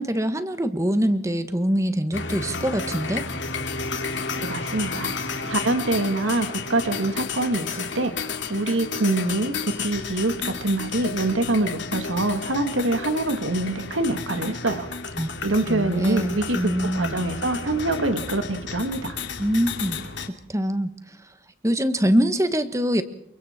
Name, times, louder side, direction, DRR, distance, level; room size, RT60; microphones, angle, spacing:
voice 1, 0.0-3.2 15.2-15.3 15.7-17.1 19.4-20.0 20.5-20.9 21.6-23.0, equal, 15° right, 10 dB, 1.5 m, -24 dB
sound 1, 2.1-20.3, left 4 dB, 65° left, 2.7 m, -32 dB
voice 2, 4.4-5.1 5.5-14.9 15.4-19.2, right 2 dB, 75° right, 9 dB, 1.8 m, -25 dB
29.0 x 24.0 x 4.4 m, 0.71 s
head